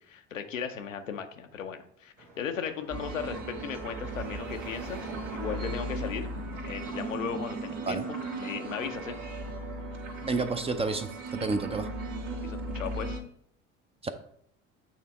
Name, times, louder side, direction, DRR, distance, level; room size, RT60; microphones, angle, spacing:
voice 1, 0.1-6.3 6.6-9.2 12.4-13.2, left 7 dB, 85° left, 7 dB, 0.6 m, -37 dB
Car passing by / Traffic noise roadway noise / Engine, 2.2-9.5, right 2 dB, 75° right, 1.2 m, -49 dB
sound 1, 2.9-13.2, right 2 dB, 50° right, 1.4 m, -37 dB
voice 2, 10.2-11.9 14.0-14.1, right 3 dB, 15° right, 9 dB, 0.5 m, -30 dB
8.4 x 3.3 x 4.2 m, 0.67 s
figure-of-eight pair, 60°, 38 cm